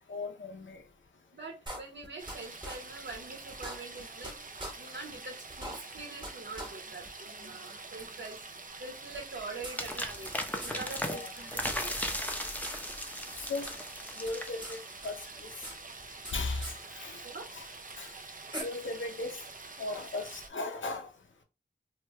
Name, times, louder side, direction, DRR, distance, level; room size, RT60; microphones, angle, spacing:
voice 1, 0.1-0.8 7.4-7.5 11.0-11.3 13.4-13.7 14.2-15.1 15.4-15.5 16.3-17.3 17.5-17.7 18.0-18.1 18.6-19.4 19.8-21.1, left 3 dB, 85° left, 0.7 m, -37 dB
voice 2, 1.3-4.4 4.8-7.0 7.4-8.4 8.8-10.3 10.6-12.0 17.2-17.5, right 3 dB, 70° right, 1.3 m, -44 dB
sound 1, 1.7-2.4 2.6-2.8 3.1-3.2 3.5-4.3 4.6-4.7 5.1-5.2 5.5-6.3 6.6-6.7 7.0-7.1 8.0-8.1 9.1-10.3 10.6-10.8 11.0-11.1 11.4-12.4 12.6-12.8 13.1-13.8 14.0-14.8 15.0-16.3 16.6-16.7 17.9-18.0 18.5-18.6, right 1 dB, 25° right, 1.3 m, -42 dB
sound 2, 2.2-20.5, right 3 dB, 45° right, 0.5 m, -47 dB
sound 3, 9.8-15.3, left 1 dB, 10° left, 0.6 m, -37 dB
3.0 x 2.3 x 3.1 m
wide cardioid pair, 55°, 19 cm